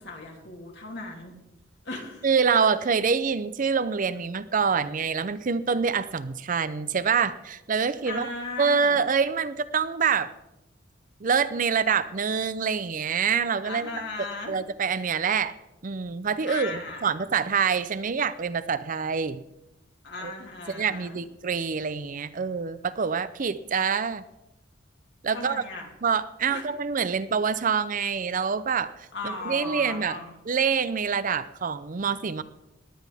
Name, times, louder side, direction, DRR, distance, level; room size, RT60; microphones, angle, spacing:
voice 1, 0.0-1.3 1.8-2.3 8.0-9.0 13.6-14.6 16.4-17.1 20.0-21.2 25.3-25.9 26.5-26.6 29.1-30.3, left 2 dB, 60° left, 1 dB, 2.9 m, -37 dB
voice 2, 2.2-8.3 8.6-10.3 11.2-13.9 14.5-15.5 15.8-19.4 20.2-20.3 20.7-24.2 25.2-25.6 26.0-28.9 29.2-30.2 30.5-32.4, right 6 dB, 40° right, 14 dB, 0.5 m, -26 dB
19.0 x 10.5 x 3.5 m, 0.93 s
head